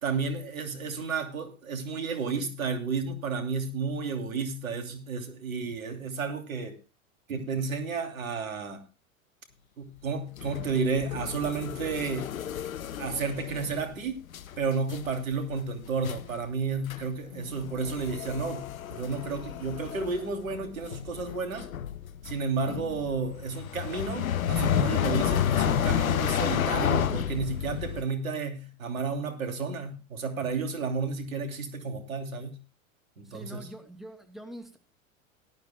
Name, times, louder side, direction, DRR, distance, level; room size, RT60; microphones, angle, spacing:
voice 1, 0.0-6.8 7.3-8.8 9.8-12.3 13.0-14.2 14.6-21.7 22.2-32.6 33.2-33.7, right 4 dB, 80° right, 6 dB, 2.9 m, -32 dB
sound 1, 10.4-14.0 14.3-14.6 14.9-15.2 15.6-15.7 16.0-16.3 16.9-17.0 17.3-28.0, left 9 dB, 85° left, 0.9 m, -31 dB
voice 2, 33.2-34.8, equal, ahead, 4 dB, 2.6 m, -44 dB
18.0 x 12.5 x 2.2 m, 0.31 s
hypercardioid pair, 90°, 40 cm